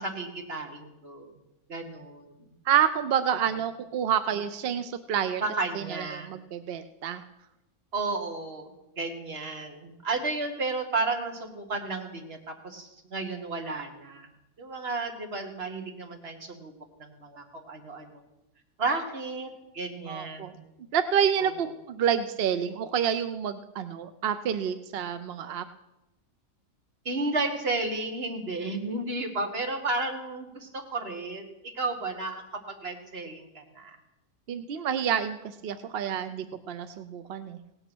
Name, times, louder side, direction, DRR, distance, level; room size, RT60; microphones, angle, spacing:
voice 1, 0.0-1.3 1.7-2.5 5.4-6.3 7.9-8.7 9.0-14.3 14.6-16.7 17.0-18.2 18.8-19.5 19.7-20.6 21.4-21.5 27.1-34.0, right 3 dB, 45° right, 3 dB, 1.8 m, -33 dB
voice 2, 2.7-5.4 5.7-7.2 20.1-20.5 20.9-25.6 34.5-37.6, right 8 dB, 60° right, 10 dB, 0.6 m, -28 dB
17.0 x 9.0 x 6.2 m, 0.95 s
omnidirectional pair, 1.6 m